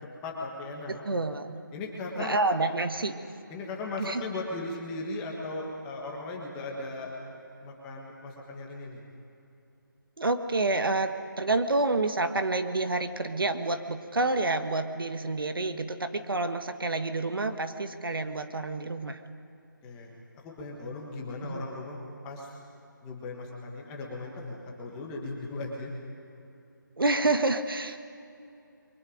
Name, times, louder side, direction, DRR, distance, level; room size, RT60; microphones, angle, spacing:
voice 1, 0.2-1.0 1.7-2.4 3.5-7.1 7.6-9.0 19.8-22.0 22.2-22.5 23.0-25.9, left 2 dB, 10° left, -2 dB, 1.5 m, -37 dB
voice 2, 0.9-1.6 2.2-3.2 4.0-4.2 10.2-19.2 21.4-21.6 27.0-28.0, right 2 dB, 90° right, 8 dB, 1.7 m, -28 dB
28.0 x 23.5 x 5.2 m, 2.7 s
figure-of-eight pair, 175°, 11 cm